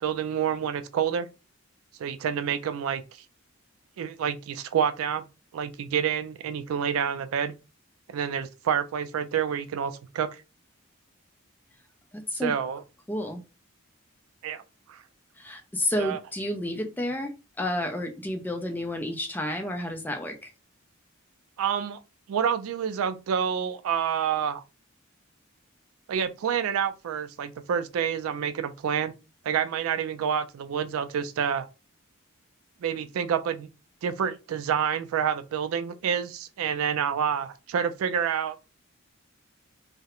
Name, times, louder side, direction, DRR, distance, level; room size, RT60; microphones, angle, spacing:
voice 1, 0.0-1.3 2.0-3.0 4.0-5.2 5.5-7.6 8.1-10.4 12.3-12.8 14.4-14.6 14.9-15.0 16.0-16.2 21.6-22.0 22.3-24.6 26.1-29.1 29.4-31.7 32.8-33.7 34.0-38.6, right 8 dB, 80° right, 0.3 m, -28 dB
voice 2, 12.1-12.5 13.1-13.4 15.4-20.5, left 1 dB, 10° left, 0.3 m, -31 dB
2.3 x 2.1 x 2.9 m
head